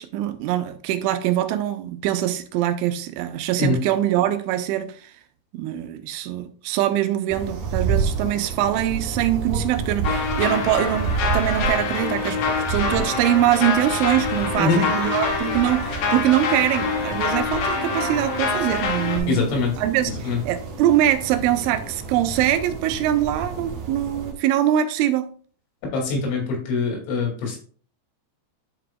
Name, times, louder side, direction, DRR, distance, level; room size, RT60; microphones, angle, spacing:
voice 1, 0.0-5.1 5.5-25.3, right 12 dB, 85° right, 3.1 m, -23 dB
sound 1, 7.3-24.3, right 5 dB, 65° right, 2.4 m, -30 dB
sound 2, 10.0-19.2, left 4 dB, 65° left, 2.7 m, -26 dB
voice 2, 19.3-19.7 20.2-20.4 25.9-27.6, left 3 dB, 80° left, 4.8 m, -23 dB
11.0 x 4.9 x 2.3 m
omnidirectional pair, 5.4 m